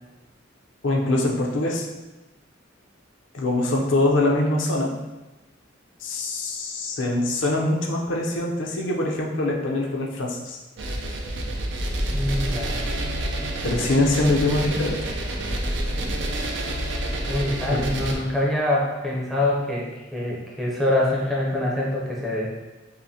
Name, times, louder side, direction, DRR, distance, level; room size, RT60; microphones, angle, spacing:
voice 1, 0.8-1.9 3.3-4.9 6.0-10.6 13.6-15.0 17.7-17.8, left 2 dB, 65° left, -1 dB, 0.6 m, -23 dB
sound 1, 10.8-18.1, right 1 dB, 65° right, 0.5 m, -28 dB
voice 2, 12.1-12.9 17.3-22.5, left 1 dB, ahead, -5 dB, 0.6 m, -25 dB
5.5 x 2.1 x 2.7 m, 1.1 s
head